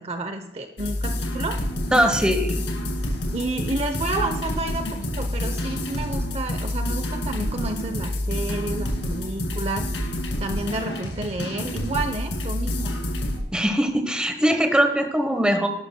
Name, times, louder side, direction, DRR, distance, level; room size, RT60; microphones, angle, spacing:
voice 1, 0.0-1.6 3.3-13.0, right 2 dB, 35° right, 7 dB, 0.7 m, -30 dB
sound 1, 0.8-13.4, left 1 dB, 80° left, 2.4 m, -28 dB
voice 2, 1.9-2.6 13.5-15.7, equal, 5° right, 5 dB, 1.1 m, -21 dB
18.5 x 12.0 x 2.2 m, 1.0 s
head